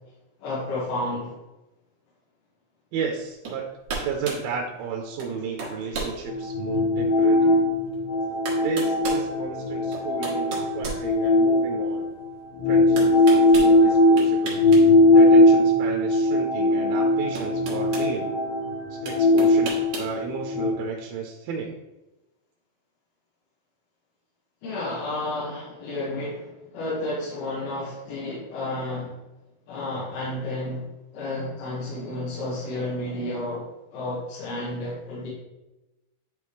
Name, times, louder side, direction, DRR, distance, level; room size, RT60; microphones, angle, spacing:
voice 1, 0.4-1.3 24.6-29.1 29.7-30.8 31.1-35.3, left 2 dB, 85° left, -9 dB, 3.5 m, -31 dB
voice 2, 2.9-3.6 3.9-7.6 8.6-12.1 12.7-13.1 13.5-18.3 18.9-21.8, right 6 dB, 90° right, 1 dB, 2.5 m, -33 dB
sound 1, 3.4-3.6 3.9-4.5 5.2-5.3 5.6-6.2 6.7-6.8 7.9-8.0 8.5-9.3 9.9-11.6 13.0-13.7 14.2-14.8 15.1-15.3 16.7-16.8 17.4-18.1 19.1-20.1, right 3 dB, 60° right, 2.2 m, -33 dB
sound 2, 6.3-12.1 12.6-20.7, left 1 dB, 70° left, 2.3 m, -20 dB
10.0 x 3.4 x 3.1 m, 1.0 s
omnidirectional pair, 4.3 m